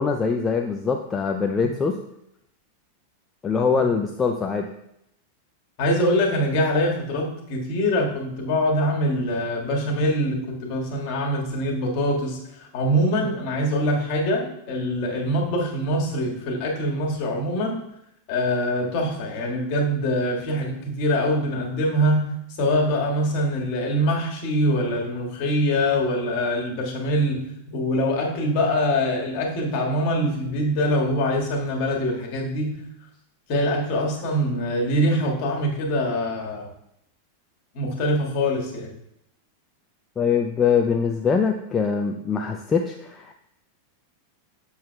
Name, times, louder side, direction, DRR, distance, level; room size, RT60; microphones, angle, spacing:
voice 1, 0.0-2.0 3.4-4.7 40.2-43.3, left 5 dB, 20° left, 3 dB, 0.4 m, -23 dB
voice 2, 5.8-17.8 18.3-22.3 22.6-32.8 33.5-36.7 37.7-38.9, equal, 45° left, -1 dB, 1.7 m, -24 dB
7.4 x 6.9 x 2.3 m, 0.79 s
figure-of-eight pair, 90°, 0 cm